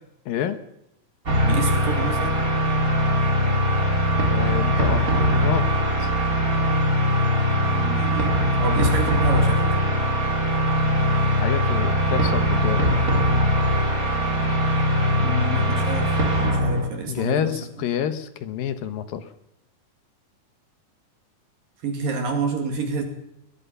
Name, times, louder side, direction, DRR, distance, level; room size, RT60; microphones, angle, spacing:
voice 1, 0.3-0.6 4.3-5.7 6.0-6.1 11.4-12.9 17.1-19.3, left 9 dB, 75° left, 11 dB, 2.8 m, -28 dB
sound 1, 1.3-16.9, equal, 25° right, 3.4 m, -21 dB
voice 2, 1.4-2.4 7.7-8.3 8.6-9.7 15.1-17.5 21.8-23.0, right 3 dB, 65° right, 4 dB, 4.1 m, -28 dB
21.5 x 21.5 x 5.6 m, 0.83 s
omnidirectional pair, 4.3 m